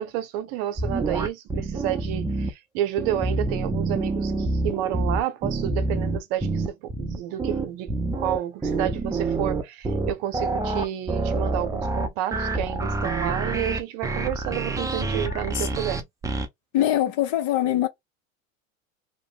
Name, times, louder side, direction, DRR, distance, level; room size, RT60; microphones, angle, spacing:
voice 1, 0.0-16.1, right 12 dB, 55° right, 0.8 m, -30 dB
sound 1, 0.8-2.5 3.0-16.5, right 2 dB, 10° right, 0.6 m, -27 dB
voice 2, 15.3-15.8 16.7-17.9, left 13 dB, 55° left, 1.0 m, -24 dB
2.9 x 2.0 x 3.3 m
hypercardioid pair, 85°, 40 cm